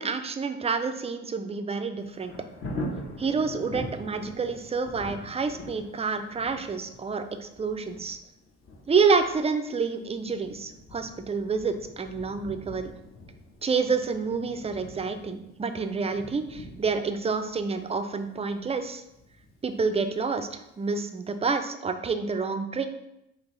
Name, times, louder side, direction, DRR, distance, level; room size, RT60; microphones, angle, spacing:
voice 1, 0.0-2.3 3.2-8.2 8.9-12.9 13.6-19.0 19.6-22.9, right 5 dB, 20° right, 8 dB, 0.4 m, -28 dB
Thunder, 2.0-20.7 21.2-21.3, left 1 dB, 45° left, 1.0 m, -43 dB
5.2 x 2.9 x 3.2 m, 0.85 s
cardioid pair, 90°, 30 cm